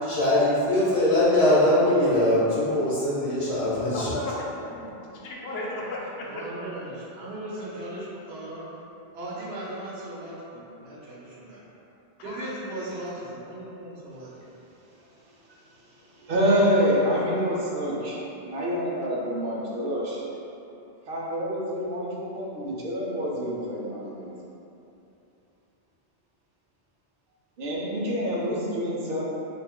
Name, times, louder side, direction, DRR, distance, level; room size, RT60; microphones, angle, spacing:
voice 1, 0.1-4.1, left 1 dB, 45° left, -8 dB, 0.6 m, -22 dB
voice 2, 3.9-4.8 5.2-6.4 12.2-12.6, left 1 dB, 75° left, -3 dB, 0.8 m, -34 dB
voice 3, 6.2-8.7 9.1-11.6 12.2-14.5, right 1 dB, 90° right, -6 dB, 1.0 m, -37 dB
voice 4, 15.9-20.2 21.1-24.3 27.6-29.2, equal, 65° right, -4 dB, 0.8 m, -27 dB
2.7 x 2.4 x 3.6 m, 2.9 s
omnidirectional pair, 1.0 m